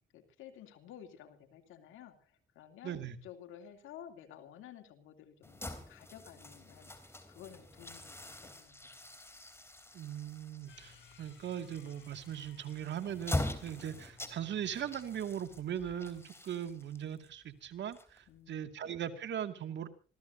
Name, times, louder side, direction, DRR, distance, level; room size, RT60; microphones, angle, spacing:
voice 1, 0.1-9.1 18.3-18.8, left 10 dB, 90° left, 6 dB, 2.9 m, -53 dB
voice 2, 2.8-3.2 9.9-19.9, right 9 dB, 65° right, 8 dB, 2.3 m, -39 dB
sound 1, 5.4-18.5, left 1 dB, 10° left, 3.5 m, -44 dB
sound 2, 10.7-16.3, left 6 dB, 70° left, 6.5 m, -60 dB
26.0 x 15.5 x 2.8 m, 0.37 s
cardioid pair, 90°, 20 cm